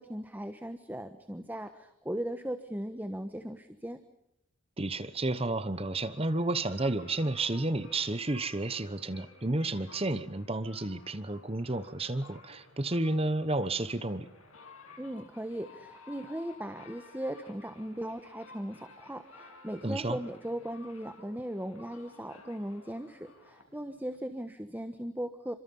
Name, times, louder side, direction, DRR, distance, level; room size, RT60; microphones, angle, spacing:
voice 1, 0.0-4.0 15.0-25.5, right 1 dB, 10° right, 9 dB, 1.3 m, -38 dB
sound 1, 4.8-24.2, left 3 dB, 90° left, 6.7 m, -55 dB
voice 2, 4.8-14.3 19.8-20.2, right 2 dB, 30° right, 13 dB, 1.1 m, -31 dB
29.0 x 26.0 x 5.5 m, 0.80 s
head